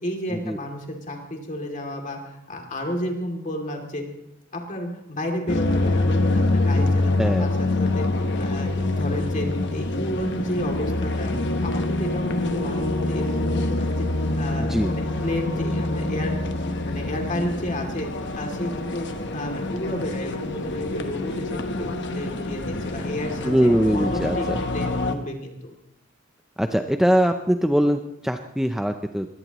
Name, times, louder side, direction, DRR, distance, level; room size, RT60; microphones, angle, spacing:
voice 1, 0.0-4.0 4.5-14.1 14.4-16.4 16.8-18.1 18.3-25.7, left 1 dB, 40° left, 2 dB, 2.7 m, -32 dB
sound 1, 5.5-25.2, left 2 dB, 55° left, 1.1 m, -25 dB
voice 2, 14.6-14.9 23.4-24.6 26.6-29.3, equal, ahead, 6 dB, 0.5 m, -22 dB
22.5 x 17.0 x 3.0 m, 0.80 s
head